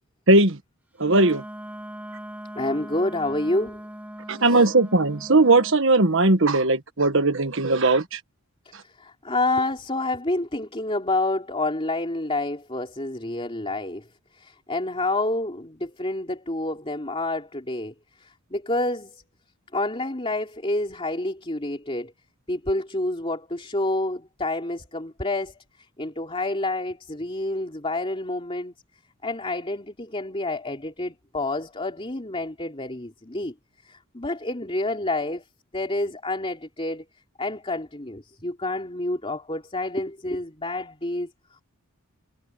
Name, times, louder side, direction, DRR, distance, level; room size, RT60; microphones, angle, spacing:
voice 1, 0.3-0.6 1.0-1.4 4.3-8.2, right 2 dB, 60° right, 1.5 m, -19 dB
Wind instrument woodwind instrument, 1.0-5.8, equal, 5° right, 1.2 m, -40 dB
voice 2, 2.5-3.8 4.4-4.7 8.8-14.1 14.3-19.2 19.7-22.1 22.5-25.5 26.0-28.7 29.2-33.5 33.8-35.4 35.7-37.0 37.4-41.3, left 2 dB, 25° left, 3.2 m, -28 dB
head